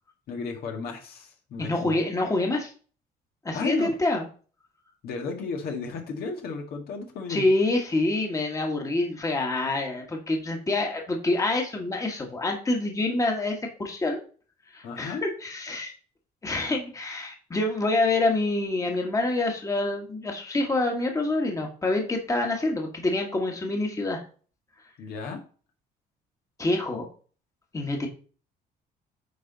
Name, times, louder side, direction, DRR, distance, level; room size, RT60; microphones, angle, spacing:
voice 1, 0.3-2.0 3.5-4.0 5.0-7.5 14.8-15.2 25.0-25.4, left 4 dB, 65° left, 2 dB, 1.8 m, -33 dB
voice 2, 1.6-2.7 3.5-4.3 7.3-14.2 14.7-15.9 16.4-24.2 26.6-27.1 27.7-28.1, left 2 dB, 20° left, 2 dB, 1.6 m, -26 dB
9.4 x 4.3 x 4.0 m, 0.40 s
cardioid pair, 110°, 17 cm